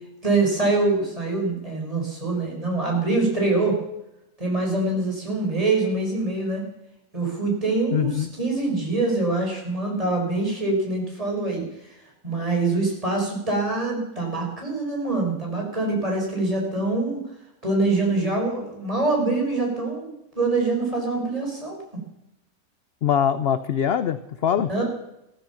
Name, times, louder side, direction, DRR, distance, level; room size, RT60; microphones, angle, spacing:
voice 1, 0.2-3.8 4.4-6.7 7.1-11.6 12.2-17.2 17.6-21.8 24.7-24.8, right 3 dB, 20° right, -1 dB, 4.9 m, -24 dB
voice 2, 7.9-8.3 23.0-24.7, left 8 dB, 55° left, 12 dB, 0.7 m, -23 dB
15.0 x 14.0 x 5.8 m, 0.87 s
omnidirectional pair, 1.6 m